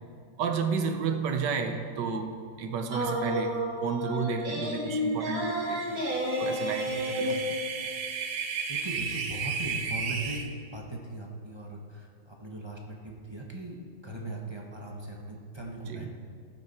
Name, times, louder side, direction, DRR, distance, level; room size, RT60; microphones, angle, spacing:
voice 1, 0.4-6.0 6.4-7.6 15.9-16.1, right 5 dB, 65° right, 6 dB, 1.4 m, -32 dB
sound 1, 2.9-7.3, equal, 50° right, 2.7 m, -30 dB
sound 2, 6.2-10.4, right 5 dB, 80° right, 1.7 m, -34 dB
voice 2, 6.8-7.3 8.7-16.1, right 2 dB, 20° right, -1 dB, 0.9 m, -39 dB
15.5 x 9.1 x 4.4 m, 2.2 s
omnidirectional pair, 2.2 m